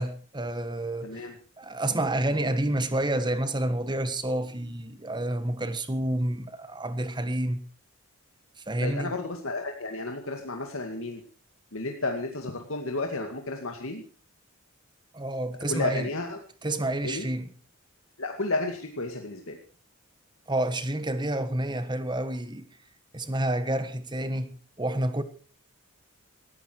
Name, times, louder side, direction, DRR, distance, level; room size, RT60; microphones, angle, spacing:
voice 1, 0.0-1.3 1.6-7.6 8.7-9.1 15.1-16.1 16.6-17.5 20.5-22.7 23.1-25.2, right 1 dB, 20° right, 1.4 m, -29 dB
voice 2, 1.0-1.4 8.8-11.2 11.7-14.0 15.7-16.4 17.0-17.3 18.2-19.6, left 2 dB, 65° left, 2.2 m, -32 dB
19.0 x 15.0 x 4.6 m
head